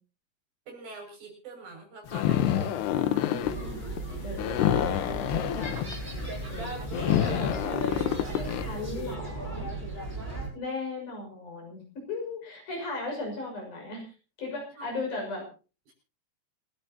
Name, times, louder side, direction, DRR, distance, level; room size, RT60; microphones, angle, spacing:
voice 1, 0.7-2.8 3.0-3.6 3.9-4.2 6.0-6.5 6.8-7.4 7.9-8.6 14.8-14.9 15.9-16.0, right 3 dB, 60° right, 1 dB, 8.3 m, -46 dB
sound 1, 2.1-9.0, left 11 dB, 85° left, 3.1 m, -28 dB
voice 2, 2.5-3.8 4.2-5.8 6.5-6.9 7.3-7.8 8.4-9.7 10.5-11.8 12.1-14.1 14.4-15.5, left 3 dB, 50° left, 1 dB, 7.6 m, -37 dB
sound 2, 3.4-10.5, right 2 dB, 15° right, 8.1 m, -36 dB
28.0 x 12.5 x 2.9 m, 0.35 s
omnidirectional pair, 4.7 m